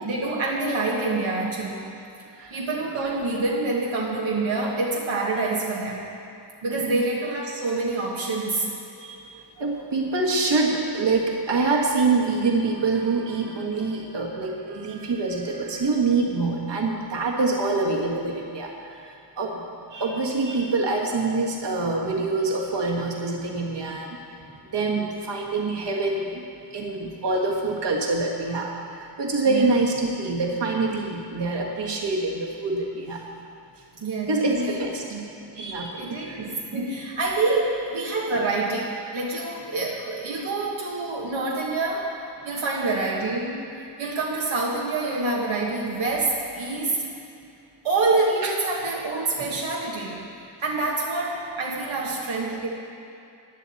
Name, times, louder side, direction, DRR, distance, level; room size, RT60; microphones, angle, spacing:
voice 1, 0.0-1.9 2.5-6.1 6.6-8.7 29.4-29.7 34.0-34.8 35.1-35.3 36.0-42.1 42.4-43.6 44.0-47.1 47.8-50.3 50.6-52.7, right 3 dB, 80° right, -4 dB, 1.5 m, -26 dB
voice 2, 9.0-19.6 19.9-26.4 26.7-33.3 34.3-35.0 35.6-36.5 48.4-48.5, right 3 dB, 65° right, -1 dB, 1.7 m, -26 dB
15.5 x 10.5 x 4.2 m, 2.6 s
wide cardioid pair, 130°, 46 cm